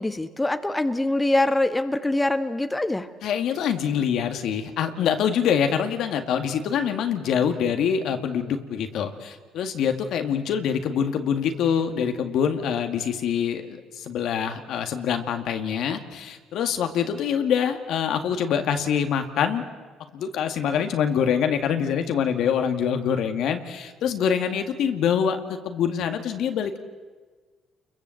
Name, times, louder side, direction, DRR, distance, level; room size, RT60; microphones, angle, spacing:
voice 1, 0.0-3.1, left 2 dB, 15° left, 8 dB, 1.5 m, -24 dB
voice 2, 3.2-19.6 20.1-26.8, left 8 dB, 70° left, 6 dB, 2.1 m, -25 dB
29.0 x 22.5 x 7.9 m, 1.4 s
supercardioid pair, 70°, 0 cm